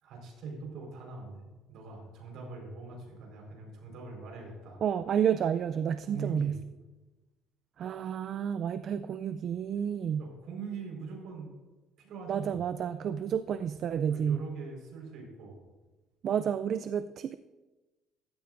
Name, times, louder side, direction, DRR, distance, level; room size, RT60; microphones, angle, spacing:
voice 1, 0.0-4.8 6.0-6.5 10.1-11.5 12.0-12.6 14.1-15.6, right 4 dB, 70° right, 0 dB, 4.5 m, -42 dB
voice 2, 4.8-6.6 7.8-10.2 12.3-14.4 16.2-17.3, right 8 dB, 50° right, 13 dB, 0.3 m, -30 dB
15.5 x 12.5 x 2.6 m, 1.2 s
cardioid pair, 120°, 0 cm